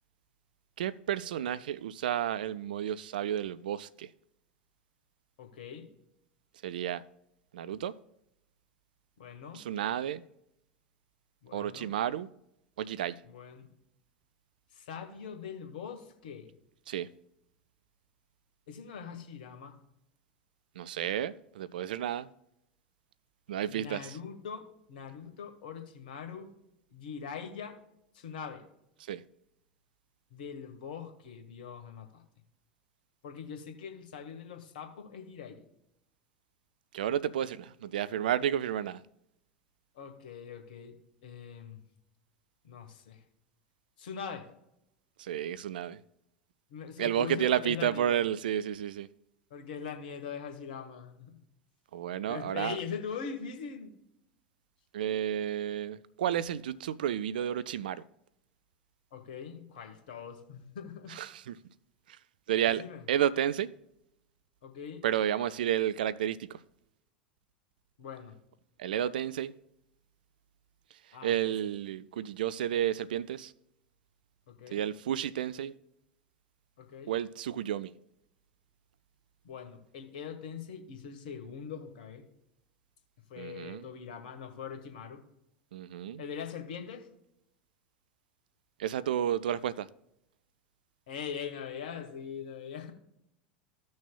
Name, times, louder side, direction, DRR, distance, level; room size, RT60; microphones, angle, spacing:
voice 1, 0.8-4.1 6.6-7.0 7.5-7.9 9.5-10.2 11.5-12.3 12.8-13.2 16.9-17.1 20.8-22.3 23.5-24.2 29.1-29.2 36.9-39.0 45.2-46.0 47.0-49.1 51.9-52.8 54.9-58.0 61.1-61.6 62.5-62.8 63.1-63.7 65.0-66.6 68.8-69.5 71.2-73.5 74.7-75.7 77.1-77.9 83.4-83.9 85.7-86.2 88.8-89.9, right 10 dB, 70° right, 0.4 m, -31 dB
voice 2, 5.4-5.9 9.2-9.6 11.4-11.9 13.2-13.7 14.7-16.5 18.7-19.7 23.7-26.5 26.9-27.8 28.1-28.6 30.3-32.2 33.2-35.6 39.9-41.0 41.2-41.8 42.6-43.2 44.0-44.5 46.7-48.2 49.5-51.3 52.3-53.9 59.1-61.1 62.8-63.0 64.6-65.0 68.0-68.3 71.1-71.5 74.5-74.8 76.8-77.1 79.4-82.2 83.3-85.2 86.2-87.1 91.1-92.9, left 7 dB, 65° left, 1.6 m, -42 dB
15.5 x 6.3 x 2.3 m
figure-of-eight pair, 80°, 5 cm